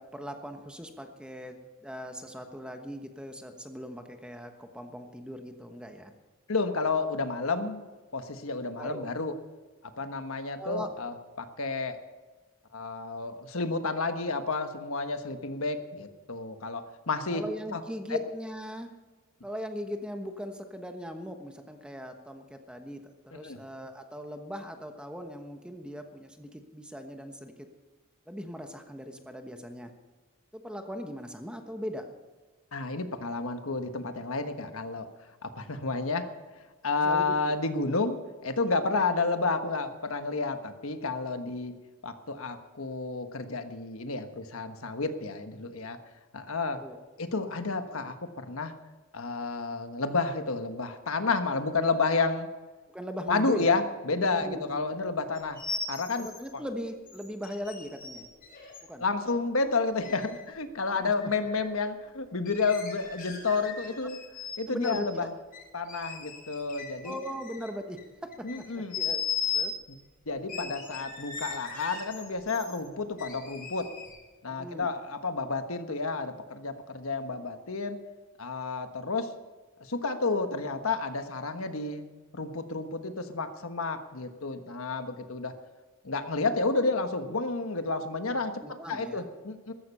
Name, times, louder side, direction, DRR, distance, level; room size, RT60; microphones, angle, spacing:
voice 1, 0.0-1.5 1.8-6.1 8.8-9.1 10.6-10.9 17.3-18.9 19.4-27.7 28.3-29.9 30.5-32.0 36.9-37.5 46.7-47.0 52.9-53.8 54.3-54.9 56.2-58.3 58.9-59.0 60.9-61.3 64.7-65.3 67.0-68.3 68.6-69.2 69.5-69.7 70.5-70.7 71.0-71.2 74.5-74.9 88.6-89.3, equal, 5° right, 5 dB, 1.2 m, -39 dB
voice 2, 6.5-7.8 8.1-9.3 10.0-12.0 12.7-17.4 17.7-17.8 23.3-23.6 32.7-35.1 35.4-36.3 36.8-38.2 38.4-41.7 42.0-46.0 46.3-46.8 47.2-48.7 49.1-52.5 53.3-55.6 55.9-56.6 59.0-64.2 64.6-65.3 65.7-67.2 68.4-69.0 70.3-73.9 74.4-78.0 78.4-79.3 79.8-82.1 82.3-85.5 86.0-88.5 88.9-89.7, left 3 dB, 70° left, 8 dB, 1.3 m, -30 dB
sound 1, 55.4-56.5 57.1-58.8 60.0-60.4 61.2-61.7 62.4-64.6 64.8-65.1 65.5-68.0 68.3-69.8 70.5-72.8 73.2-74.2, left 6 dB, 40° left, 3.9 m, -37 dB
14.5 x 14.0 x 5.5 m, 1.3 s
head